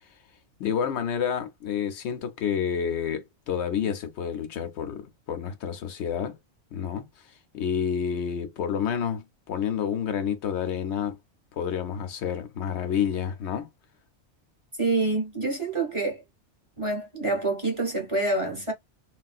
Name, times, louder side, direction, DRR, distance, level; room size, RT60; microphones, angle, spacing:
voice 1, 0.6-6.4 6.7-11.2 11.5-13.7, left 8 dB, 70° left, 0.9 m, -29 dB
voice 2, 14.8-16.2 16.8-18.7, right 2 dB, 30° right, 0.8 m, -27 dB
3.3 x 2.3 x 2.3 m
omnidirectional pair, 1.2 m